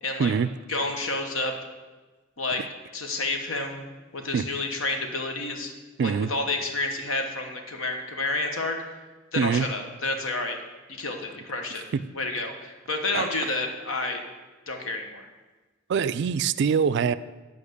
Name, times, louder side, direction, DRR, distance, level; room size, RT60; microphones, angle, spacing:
voice 1, 0.0-0.3 0.7-1.5 2.4-2.6 2.9-3.8 4.1-5.7 6.0-8.8 9.3-10.6 11.0-11.9 12.1-14.2 14.7-15.3, left 2 dB, 85° left, 4 dB, 1.3 m, -29 dB
voice 2, 6.0-6.3 9.4-9.7 11.9-12.0 13.1-13.2 15.9-17.2, right 6 dB, 60° right, 16 dB, 0.3 m, -23 dB
8.7 x 5.2 x 6.8 m, 1.2 s
head